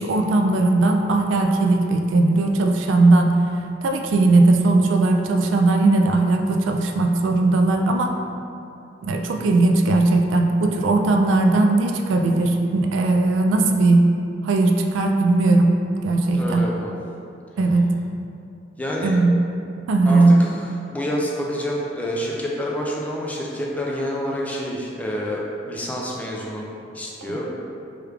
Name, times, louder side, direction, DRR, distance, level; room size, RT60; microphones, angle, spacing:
voice 1, 0.0-3.4 3.8-8.1 9.0-14.1 14.4-15.7 16.0-16.6 17.6-17.9 19.0-19.3 19.9-20.4 27.2-27.3, right 2 dB, 85° right, 3 dB, 0.3 m, -18 dB
voice 2, 16.3-16.9 18.8-19.2 20.1-26.7 26.9-27.6, equal, 10° left, -3 dB, 0.3 m, -28 dB
3.3 x 2.3 x 3.2 m, 2.6 s
head